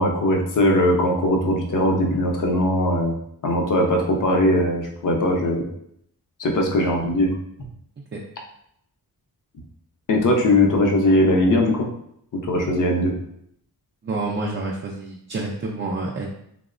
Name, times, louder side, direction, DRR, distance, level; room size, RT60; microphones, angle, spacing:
voice 1, 0.0-3.2 3.4-5.7 6.4-7.3 10.1-11.9 12.3-13.1, left 1 dB, 50° left, 1 dB, 0.6 m, -20 dB
voice 2, 14.0-16.3, right 2 dB, 30° right, -3 dB, 0.4 m, -28 dB
2.9 x 2.0 x 2.4 m, 0.73 s
cardioid pair, 60°, 41 cm